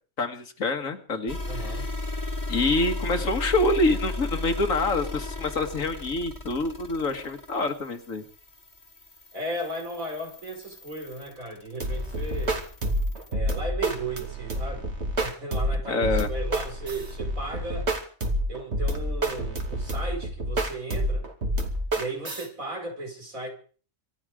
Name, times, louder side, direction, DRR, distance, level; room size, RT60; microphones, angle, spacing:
voice 1, 0.2-1.8 2.5-8.2 15.9-16.3, left 2 dB, 70° left, 2.1 m, -26 dB
sound 1, 1.3-13.3, left 2 dB, 30° left, 1.8 m, -36 dB
voice 2, 1.5-1.9 9.3-12.6 13.3-14.9 15.2-17.9 18.5-21.3 21.9-23.5, right 2 dB, 75° right, 5.5 m, -35 dB
sound 2, 11.8-22.5, right 1 dB, 50° right, 2.7 m, -28 dB
25.5 x 11.0 x 5.0 m
omnidirectional pair, 1.4 m